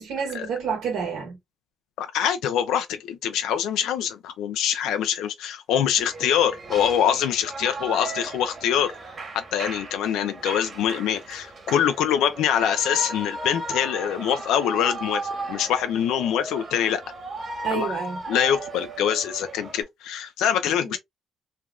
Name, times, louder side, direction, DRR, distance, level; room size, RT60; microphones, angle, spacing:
voice 1, 0.0-1.4 17.6-18.2 20.9-21.0, right 6 dB, 90° right, 1.5 m, -29 dB
voice 2, 2.0-8.9 9.3-17.0 17.7-17.9 18.3-21.0, left 9 dB, 90° left, 0.5 m, -24 dB
Shout / Cheering, 6.0-19.8, right 2 dB, 40° right, 1.3 m, -36 dB
3.3 x 2.4 x 2.3 m
cardioid pair, 90°, 0 cm